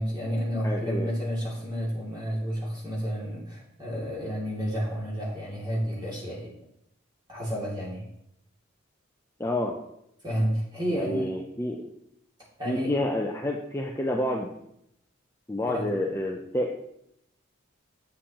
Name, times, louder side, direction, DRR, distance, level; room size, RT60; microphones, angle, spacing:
voice 1, 0.0-6.5 7.3-8.0 10.2-11.3 12.6-12.9 15.7-15.9, equal, 20° right, -5 dB, 2.5 m, -30 dB
voice 2, 0.6-1.1 9.4-9.8 10.9-11.8 12.6-14.5 15.5-16.9, left 1 dB, 15° left, 0 dB, 0.5 m, -29 dB
8.5 x 7.4 x 2.9 m, 0.77 s
head